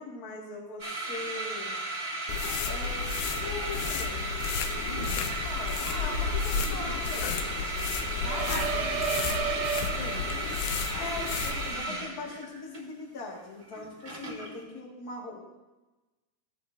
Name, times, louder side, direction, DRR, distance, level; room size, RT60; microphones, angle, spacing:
voice 1, 0.0-1.8 2.6-4.2 4.9-5.1 5.4-7.6 8.2-9.0 10.9-15.4, left 2 dB, 35° left, -3 dB, 1.6 m, -41 dB
sound 1, 0.8-14.6, right 2 dB, 20° right, 2.7 m, -35 dB
sound 2, 2.3-11.9, left 6 dB, 90° left, 1.9 m, -33 dB
voice 2, 4.8-5.2 8.5-8.7 9.0-9.4 10.0-10.3 10.6-11.4 11.7-12.1, left 1 dB, 70° left, -2 dB, 3.3 m, -41 dB
sound 3, 8.2-10.6, right 7 dB, 85° right, 2.5 m, -32 dB
17.0 x 8.3 x 2.6 m, 1.1 s
omnidirectional pair, 4.4 m